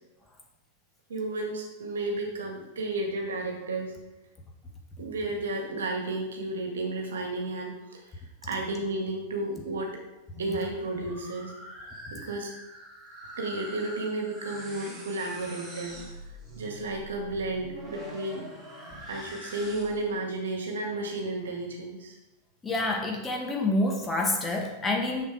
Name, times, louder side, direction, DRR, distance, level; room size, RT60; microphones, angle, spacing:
voice 1, 1.1-3.9 5.0-10.0 10.4-11.5 12.1-12.5 13.4-16.0 16.6-18.5 19.1-22.2, right 2 dB, 65° right, 1 dB, 1.8 m, -32 dB
sound 1, 10.2-20.2, right 1 dB, 15° right, 2.3 m, -44 dB
voice 2, 22.6-25.3, left 2 dB, 15° left, 0 dB, 1.6 m, -27 dB
7.2 x 6.8 x 4.8 m, 0.97 s
figure-of-eight pair, 90°, 0 cm